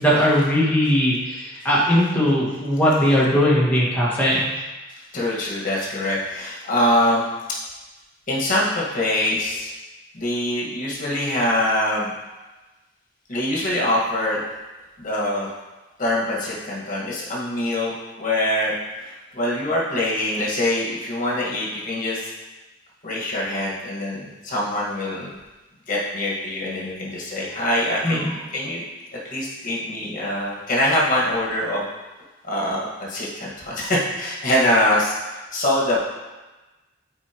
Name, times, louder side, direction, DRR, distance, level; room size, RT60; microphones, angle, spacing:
voice 1, 0.0-4.4 28.0-28.2, equal, 10° left, -7 dB, 1.6 m, -19 dB
voice 2, 5.1-7.2 8.3-9.7 10.1-12.1 13.3-14.4 15.0-15.5 16.0-22.3 23.0-25.3 25.9-28.8 29.2-31.8 32.4-36.0, left 1 dB, 45° left, -5 dB, 1.7 m, -24 dB
8.5 x 4.7 x 3.0 m, 1.1 s
head